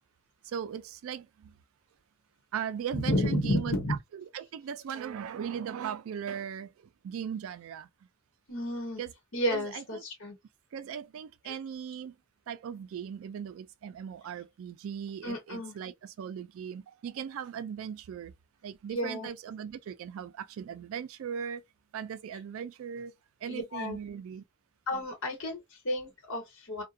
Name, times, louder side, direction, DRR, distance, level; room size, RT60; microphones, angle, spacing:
voice 1, 0.4-1.6 2.5-3.7 4.3-6.7 7.0-7.9 9.0-9.1 9.5-10.0 10.7-12.2 12.5-18.3 18.6-21.6 21.9-23.1 23.4-24.4, right 8 dB, 65° right, 0.3 m, -38 dB
voice 2, 3.0-4.0 8.5-9.0 9.3-10.4 11.4-11.5 15.2-15.7 18.9-19.3 23.5-24.0 24.9-26.8, left 1 dB, 65° left, 1.1 m, -31 dB
2.6 x 2.2 x 2.4 m
head